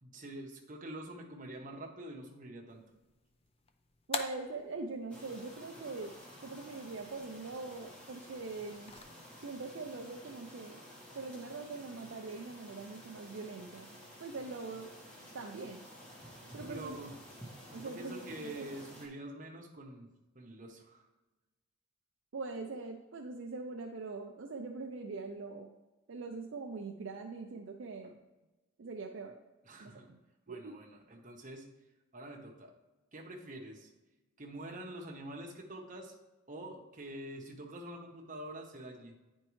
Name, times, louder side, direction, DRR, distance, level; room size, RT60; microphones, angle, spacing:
voice 1, 0.0-2.8 16.7-17.1 17.6-20.1 20.3-21.0 29.6-30.1 30.5-31.7 32.1-32.7 33.1-33.9 34.4-36.1 36.5-39.1, right 1 dB, 35° right, 0 dB, 0.9 m, -46 dB
sound 1, 2.7-9.0, left 5 dB, 25° left, 0.4 m, -47 dB
voice 2, 4.1-6.1 6.4-8.9 9.4-10.8 11.1-13.9 14.2-14.9 15.3-15.8 16.5-17.0 17.7-18.7 22.3-25.7 26.1-28.2 28.8-29.3 29.8-30.2 30.5-30.8, right 3 dB, 60° right, 2 dB, 0.5 m, -42 dB
sound 2, 5.1-19.1, equal, 5° left, 1.2 m, -52 dB
9.6 x 4.4 x 3.1 m, 1.1 s
head